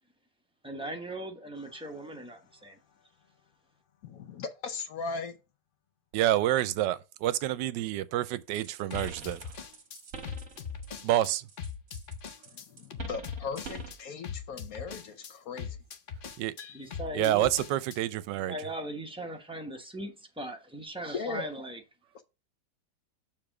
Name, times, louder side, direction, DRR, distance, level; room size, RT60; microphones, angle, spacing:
voice 1, 0.6-2.8 16.7-17.5 18.5-21.8, right 1 dB, 5° right, 0.8 m, -39 dB
sound 1, 1.6-1.9 8.9-11.3 11.6-18.0, left 7 dB, 80° left, 0.4 m, -41 dB
voice 2, 4.0-5.4 12.5-15.8 21.1-21.5 22.1-22.2, left 5 dB, 65° left, 1.0 m, -38 dB
voice 3, 6.1-9.4 11.0-11.4 16.4-16.5 17.1-18.5, right 13 dB, 85° right, 1.2 m, -28 dB
sound 2, 8.6-11.2 11.5-14.0, right 4 dB, 45° right, 1.6 m, -45 dB
6.8 x 3.6 x 4.9 m
omnidirectional pair, 1.9 m